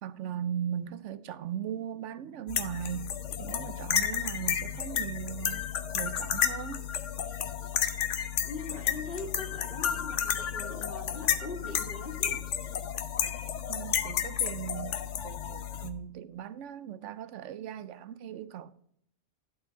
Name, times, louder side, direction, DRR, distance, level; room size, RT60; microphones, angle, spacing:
voice 1, 0.0-3.1 3.4-6.8 13.7-14.9 15.2-18.7, right 9 dB, 80° right, 0.9 m, -38 dB
sound 1, 2.5-15.9, left 9 dB, 90° left, 1.1 m, -32 dB
voice 2, 8.4-12.4, left 3 dB, 50° left, 2.2 m, -41 dB
11.5 x 4.4 x 5.6 m
omnidirectional pair, 1.2 m